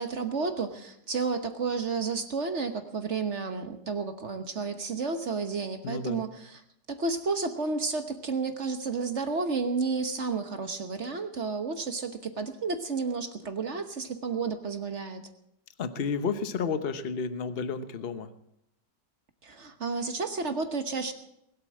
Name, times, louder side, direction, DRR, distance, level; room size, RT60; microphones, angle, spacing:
voice 1, 0.0-6.3 6.9-15.2 19.4-21.1, right 4 dB, 45° right, 8 dB, 1.3 m, -31 dB
voice 2, 5.8-6.2 15.8-18.3, left 5 dB, 40° left, 10 dB, 1.0 m, -31 dB
21.0 x 8.3 x 7.5 m, 0.78 s
omnidirectional pair, 1.9 m